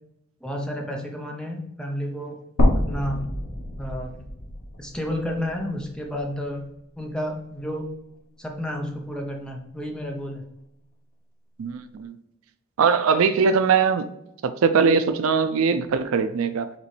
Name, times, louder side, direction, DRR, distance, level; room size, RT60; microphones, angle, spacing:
voice 1, 0.4-2.4 2.7-3.3 3.8-4.2 4.8-6.7 7.0-8.0 8.4-10.5, equal, 5° left, 0.5 m, -31 dB
sound 1, 2.6-6.7 7.1-7.2 8.6-8.7, left 1 dB, 80° left, 0.9 m, -27 dB
voice 2, 11.6-12.2 12.8-14.1 14.4-16.7, right 5 dB, 75° right, 0.4 m, -21 dB
5.1 x 3.0 x 3.2 m
head